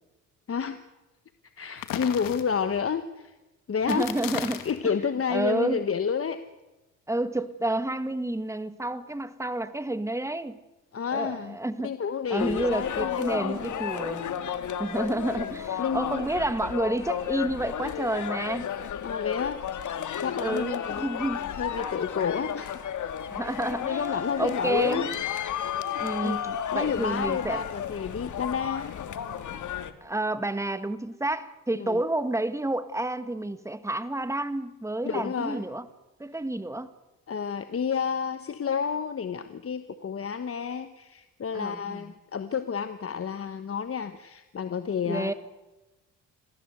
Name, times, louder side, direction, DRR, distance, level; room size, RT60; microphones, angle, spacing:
voice 1, 0.5-0.8 1.6-3.4 3.7-4.1 4.6-6.4 10.9-11.6 11.8-13.9 15.8-16.2 19.0-19.6 20.2-21.1 21.6-22.8 23.4-25.1 26.2-28.9 31.7-32.0 35.0-35.6 37.3-45.3, left 6 dB, 40° left, 10 dB, 1.4 m, -30 dB
sound 1, 1.8-2.8 3.8-4.8, left 11 dB, 80° left, 2.4 m, -35 dB
voice 2, 3.9-4.7 5.3-5.8 7.1-10.6 11.1-11.9 12.3-14.3 14.8-18.7 20.4-21.5 23.3-25.1 26.0-26.4 26.7-27.6 30.0-35.9 36.2-36.9 41.5-42.1 45.0-45.3, right 1 dB, 10° right, 12 dB, 1.7 m, -30 dB
sound 2, 12.4-29.9, left 9 dB, 60° left, 1.9 m, -33 dB
26.5 x 15.5 x 8.1 m, 1.1 s
supercardioid pair, 75°, 33 cm